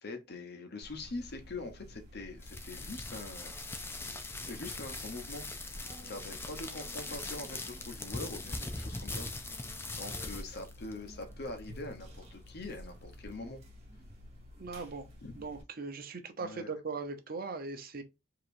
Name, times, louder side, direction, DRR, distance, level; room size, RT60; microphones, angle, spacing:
voice 1, 0.0-3.5 4.5-5.4 6.0-9.5 10.0-13.6 15.2-15.3 16.4-16.7, left 2 dB, 60° left, 0.9 m, -43 dB
sound 1, 0.8-15.6, left 1 dB, 35° right, 1.7 m, -52 dB
sound 2, 2.4-13.4, left 2 dB, 15° left, 0.5 m, -42 dB
voice 2, 14.6-15.1 15.4-18.0, right 4 dB, 50° right, 0.8 m, -39 dB
4.8 x 2.9 x 2.6 m
head